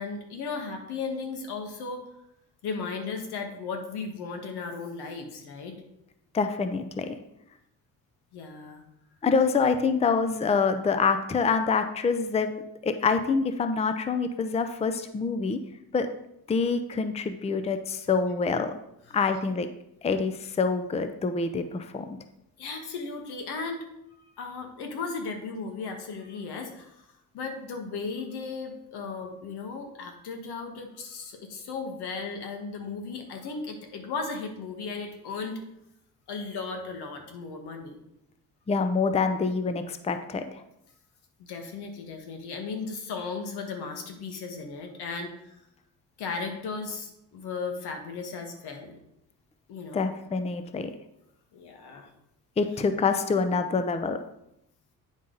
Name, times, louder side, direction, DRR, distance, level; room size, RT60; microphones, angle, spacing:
voice 1, 0.0-2.0 2.6-5.7 8.3-8.8 9.5-9.7 19.1-19.2 22.6-23.8 24.4-27.0 27.3-35.6 36.3-38.0 41.4-45.5 46.2-49.0 49.7-50.1 51.5-52.1, left 4 dB, 85° left, 4 dB, 1.5 m, -36 dB
voice 2, 6.3-7.2 9.2-12.5 12.8-15.6 15.9-16.1 16.5-18.7 19.1-19.7 20.0-22.1 38.7-40.6 49.9-50.9 52.6-54.2, left 4 dB, 15° left, 9 dB, 0.5 m, -26 dB
8.9 x 5.5 x 3.9 m, 0.83 s
cardioid pair, 110°, 38 cm